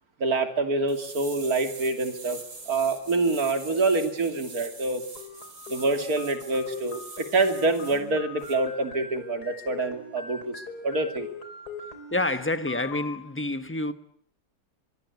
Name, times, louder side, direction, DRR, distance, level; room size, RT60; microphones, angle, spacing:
voice 1, 0.2-2.4 2.7-5.0 5.7-10.5 10.8-11.3, right 3 dB, 55° right, 3.2 m, -26 dB
sound 1, 0.9-8.0 8.4-8.6, right 3 dB, 80° right, 4.5 m, -44 dB
sound 2, 5.2-13.2, left 4 dB, 60° left, 4.3 m, -42 dB
voice 2, 12.1-13.9, left 2 dB, 10° left, 0.9 m, -28 dB
24.0 x 23.0 x 8.3 m
omnidirectional pair, 1.9 m